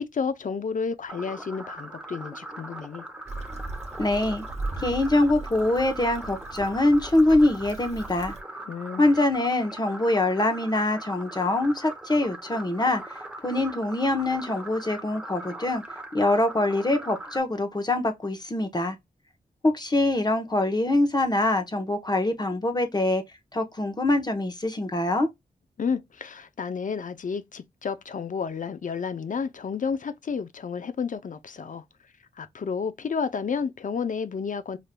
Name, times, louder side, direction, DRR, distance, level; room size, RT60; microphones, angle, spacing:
voice 1, 0.0-3.0 8.7-9.1 25.8-31.8 32.4-34.8, left 6 dB, 55° left, 0.6 m, -31 dB
sound 1, 1.1-17.4, right 2 dB, 5° right, 0.8 m, -40 dB
Stream / Traffic noise roadway noise / Trickle dribble, 3.3-8.4, right 3 dB, 40° right, 1.1 m, -38 dB
voice 2, 4.0-4.5 4.8-8.3 9.0-15.8 16.1-19.0 19.6-23.2 23.5-25.3, left 2 dB, 25° left, 0.9 m, -24 dB
5.0 x 2.7 x 2.2 m
wide cardioid pair, 80°, 16 cm